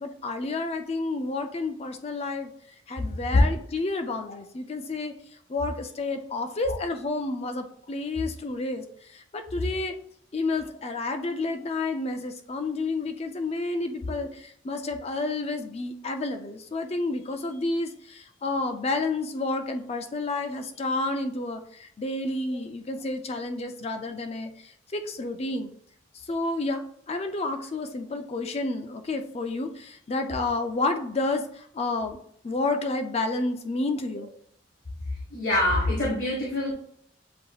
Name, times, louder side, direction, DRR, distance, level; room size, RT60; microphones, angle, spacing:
voice 1, 0.0-2.5 2.9-5.1 5.5-8.8 9.1-9.9 10.3-24.5 24.9-25.7 26.3-32.2 32.4-34.3, left 2 dB, 35° left, 6 dB, 0.5 m, -30 dB
voice 2, 35.3-36.7, left 2 dB, 75° left, -6 dB, 1.5 m, -24 dB
7.7 x 2.9 x 2.3 m, 0.65 s
head